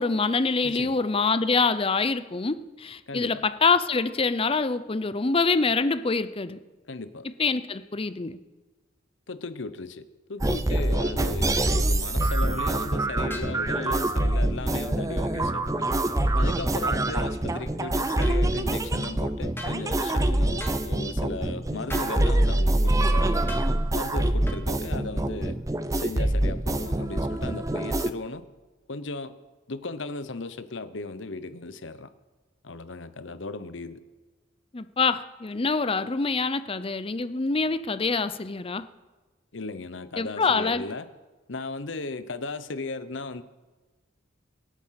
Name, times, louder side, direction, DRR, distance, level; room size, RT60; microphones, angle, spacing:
voice 1, 0.0-6.6 7.4-8.4 34.7-38.8 40.2-40.8, left 4 dB, 30° left, 13 dB, 0.6 m, -25 dB
voice 2, 0.6-1.0 3.1-3.4 6.9-7.2 9.3-15.7 16.4-23.4 23.9-25.6 25.9-28.4 28.9-29.4 29.7-32.1 32.6-34.0 39.5-41.1 41.5-43.4, left 3 dB, 70° left, 12 dB, 0.9 m, -36 dB
sound 1, 10.4-28.1, right 1 dB, 15° right, 0.6 m, -25 dB
sound 2, 13.3-13.6 18.2-18.4 19.6-19.8 20.6-20.8 21.9-22.1 23.5-23.7 24.5-24.6, left 1 dB, 10° left, 1.6 m, -38 dB
24.5 x 8.6 x 5.8 m, 1.3 s
head